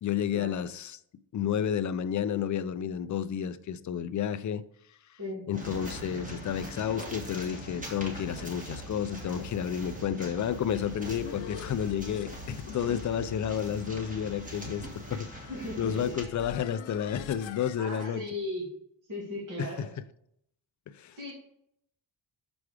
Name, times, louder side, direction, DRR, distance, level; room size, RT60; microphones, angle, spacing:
voice 1, 0.0-1.0 1.3-4.6 5.5-15.5 15.8-18.2 19.6-19.9 20.9-21.3, left 9 dB, 45° left, 0.4 m, -31 dB
sound 1, 5.5-16.2, right 1 dB, 15° right, 1.7 m, -42 dB
sound 2, 10.6-18.1, left 9 dB, 85° left, 0.7 m, -46 dB
voice 2, 15.5-16.1 17.8-18.7 19.1-19.9 21.2-21.3, left 1 dB, 45° right, 2.6 m, -37 dB
6.1 x 4.8 x 4.9 m
wide cardioid pair, 115°, 44 cm